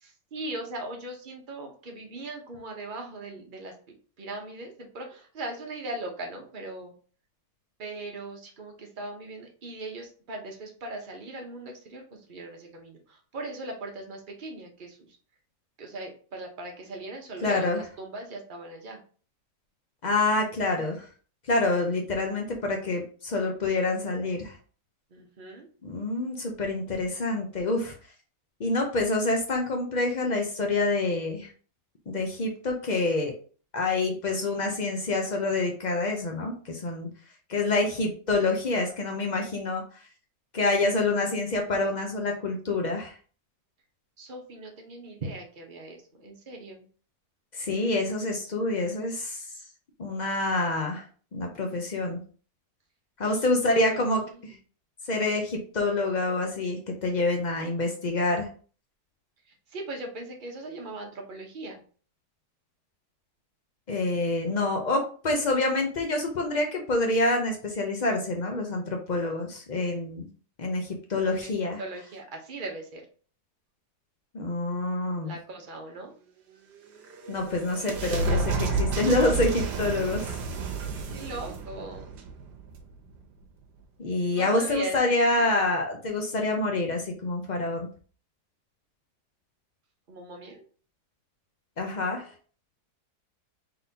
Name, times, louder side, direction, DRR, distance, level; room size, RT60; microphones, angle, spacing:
voice 1, 0.0-6.9 7.8-15.1 15.8-19.0 25.1-25.7 44.2-46.8 53.2-53.4 53.7-54.6 59.4-61.8 71.3-73.1 75.2-76.1 81.1-82.2 84.3-85.5 90.1-90.6, right 2 dB, 40° right, 2 dB, 0.8 m, -39 dB
voice 2, 17.4-17.8 20.0-21.1 21.5-24.6 25.8-27.9 28.6-31.5 32.1-33.3 33.7-37.1 37.5-39.8 40.5-43.1 47.5-49.5 50.0-51.0 51.3-52.2 53.2-54.5 55.1-58.5 63.9-70.3 70.6-71.8 74.3-75.3 77.3-80.3 84.0-87.9 91.8-92.3, left 2 dB, 85° left, 2 dB, 0.4 m, -27 dB
sound 1, 76.7-83.2, right 3 dB, 80° right, 1.4 m, -31 dB
3.9 x 3.8 x 2.8 m, 0.41 s
omnidirectional pair, 1.8 m